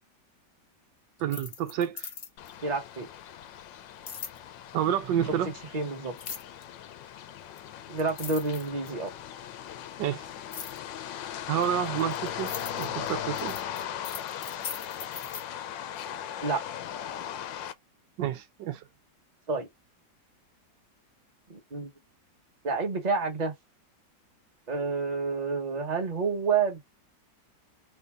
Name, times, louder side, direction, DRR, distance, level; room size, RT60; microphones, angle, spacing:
sound 1, 1.2-2.5 4.1-4.4 6.2-6.6 7.6-7.7 8.0-9.1 10.5-10.8 11.6-15.4, left 7 dB, 45° left, 1.0 m, -40 dB
voice 1, 1.2-2.1 4.7-5.5 10.0-10.2 11.5-12.5 12.8-13.6 18.2-18.8, right 10 dB, 80° right, 1.3 m, -29 dB
sound 2, 2.4-17.7, left 10 dB, 90° left, 1.3 m, -38 dB
voice 2, 2.6-3.1 5.7-6.1 7.9-9.1 16.4-16.6 19.5-19.7 21.5-21.9 22.6-23.5 24.7-26.8, right 4 dB, 25° right, 1.1 m, -29 dB
3.9 x 3.5 x 3.4 m
omnidirectional pair, 1.9 m